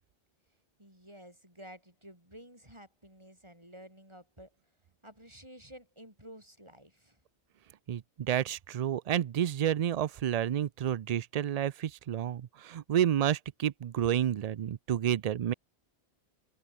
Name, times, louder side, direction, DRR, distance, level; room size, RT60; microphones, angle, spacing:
voice 1, 0.8-4.5 5.0-7.2, equal, 25° right, 8.0 m, -52 dB
voice 2, 7.9-15.5, right 10 dB, 55° right, 0.4 m, -30 dB
open air
omnidirectional pair, 1.1 m